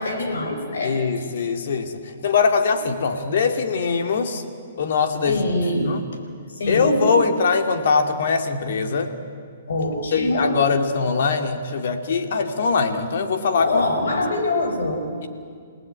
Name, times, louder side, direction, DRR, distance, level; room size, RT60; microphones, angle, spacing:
voice 1, 0.0-1.0 5.3-5.9 6.6-7.1 9.7-10.6 13.6-15.1, left 2 dB, 80° left, 5 dB, 5.1 m, -24 dB
voice 2, 0.8-4.4 4.8-5.4 5.8-6.0 6.7-9.1 10.1-13.9, left 5 dB, 65° left, 6 dB, 2.4 m, -22 dB
28.5 x 18.5 x 9.1 m, 2.2 s
hypercardioid pair, 150°, 0 cm